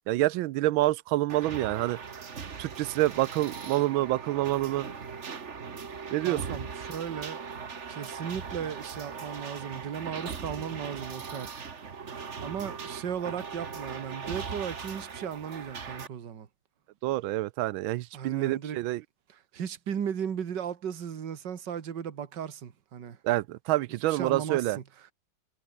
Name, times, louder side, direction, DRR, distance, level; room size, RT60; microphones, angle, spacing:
voice 1, 0.1-2.3 2.6-4.9 6.1-6.6 17.0-19.0 23.2-24.8, right 16 dB, 85° right, 1.4 m, -27 dB
sound 1, 1.3-16.1, right 5 dB, 40° right, 1.7 m, -39 dB
voice 2, 6.2-7.4 7.9-11.5 11.8-16.5 18.1-18.8 19.3-23.2 24.1-24.8, right 8 dB, 60° right, 2.3 m, -36 dB
omnidirectional pair, 2.2 m